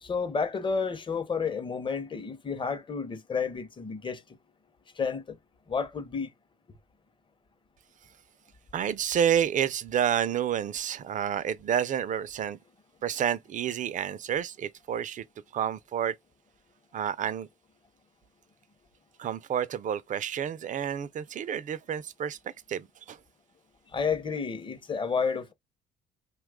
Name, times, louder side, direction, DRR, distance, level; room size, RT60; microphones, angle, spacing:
voice 1, 0.0-4.2 5.0-5.2 5.7-6.3 23.9-25.5, left 5 dB, 25° left, 0.7 m, -30 dB
voice 2, 8.7-12.6 13.0-15.2 15.5-16.2 16.9-17.5 19.2-22.4 22.7-23.2, right 9 dB, 40° right, 0.4 m, -29 dB
2.8 x 2.3 x 3.5 m
cardioid pair, 95°, 20 cm